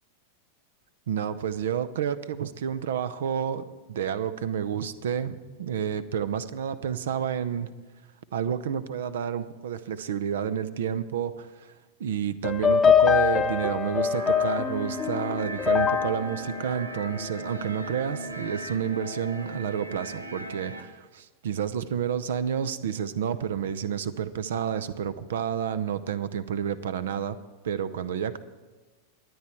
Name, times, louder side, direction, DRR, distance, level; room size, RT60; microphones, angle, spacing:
voice 1, 1.1-7.7 8.3-11.7 12.0-27.4 27.6-28.4, right 8 dB, 60° right, 14 dB, 0.7 m, -30 dB
sound 1, 12.4-17.8, left 7 dB, 15° left, 0.9 m, -24 dB
sound 2, 14.1-20.8, right 1 dB, 85° right, 1.0 m, -38 dB
23.5 x 9.5 x 4.4 m, 1.3 s
figure-of-eight pair, 90°, 0 cm